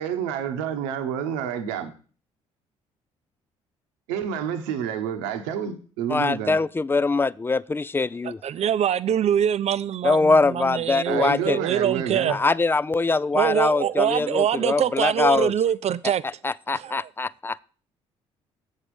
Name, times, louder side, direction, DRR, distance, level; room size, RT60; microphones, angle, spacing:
voice 1, 0.0-1.9 4.1-6.6 11.1-12.4, right 8 dB, 75° right, 1.0 m, -29 dB
voice 2, 6.1-8.4 10.0-11.6 12.3-15.5 16.4-17.6, left 3 dB, 15° left, 0.4 m, -23 dB
voice 3, 8.2-12.4 13.3-16.2 16.7-17.1, right 9 dB, 50° right, 0.6 m, -24 dB
7.5 x 6.4 x 4.9 m
hypercardioid pair, 50°, 15 cm